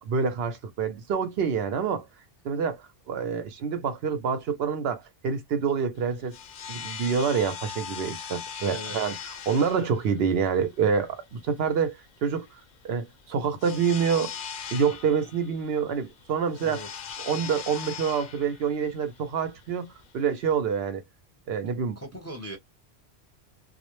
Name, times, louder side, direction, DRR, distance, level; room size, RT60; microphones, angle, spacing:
voice 1, 0.0-2.1 2.4-6.4 6.7-9.2 9.5-12.5 12.8-14.3 14.7-16.8 17.2-21.0 21.5-22.0, right 6 dB, 70° right, 0.8 m, -27 dB
sound 1, 6.0-20.5, left 7 dB, 60° left, 0.6 m, -40 dB
voice 2, 8.7-9.0 16.6-17.0 22.0-22.6, right 1 dB, 15° left, 0.7 m, -39 dB
2.3 x 2.0 x 2.9 m
omnidirectional pair, 1.1 m